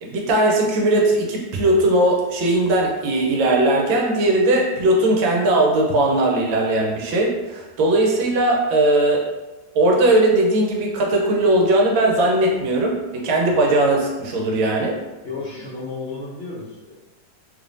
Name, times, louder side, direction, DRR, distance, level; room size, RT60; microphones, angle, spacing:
voice 1, 0.0-9.2 9.7-15.0, right 1 dB, 80° right, 0 dB, 1.4 m, -19 dB
voice 2, 15.2-16.9, left 3 dB, 55° left, -10 dB, 0.6 m, -32 dB
3.5 x 3.2 x 2.5 m, 1.1 s
omnidirectional pair, 2.1 m